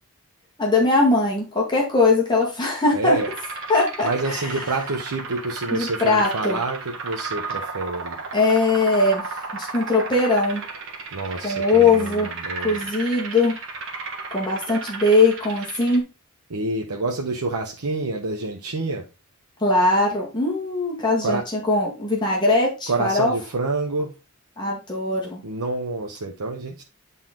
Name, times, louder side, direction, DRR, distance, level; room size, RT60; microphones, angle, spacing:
voice 1, 0.6-3.2 3.7-4.5 5.7-6.6 8.3-10.6 11.4-12.3 12.6-13.6 14.3-16.0 19.6-23.3 24.6-25.4, left 3 dB, 20° left, 1.8 m, -20 dB
voice 2, 2.9-3.3 4.0-8.2 11.1-12.9 16.5-19.1 21.2-21.5 22.9-24.1 25.4-26.8, right 3 dB, 90° right, 0.9 m, -27 dB
sound 1, 3.2-16.0, right 4 dB, 55° right, 1.5 m, -34 dB
8.9 x 4.0 x 3.7 m
head